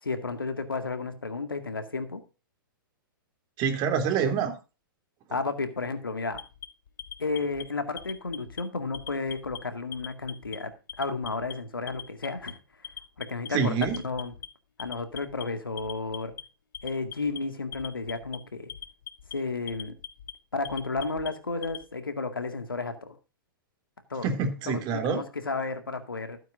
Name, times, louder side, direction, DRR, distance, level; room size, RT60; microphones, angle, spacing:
voice 1, 0.0-2.2 5.3-6.4 7.2-12.9 13.2-13.7 14.0-14.3 14.8-16.4 16.8-18.7 19.3-19.9 20.5-23.2 24.1-24.3 24.7-26.4, left 3 dB, 90° left, 8 dB, 2.1 m, -32 dB
voice 2, 3.6-4.5 13.5-14.0 24.2-25.2, right 6 dB, 40° right, 6 dB, 3.2 m, -26 dB
Alarm, 6.3-7.6 8.0-8.6 8.9-9.6 9.9-10.6 10.9-11.5 11.9-12.5 12.8-13.5 13.8-14.5 14.8-15.4 15.8-16.4 16.7-17.4 17.7-18.4 18.7-19.3 19.7-20.3 20.6-21.8, left 9 dB, 65° left, 1.7 m, -41 dB
15.5 x 9.1 x 2.6 m, 0.31 s
hypercardioid pair, 110°, 11 cm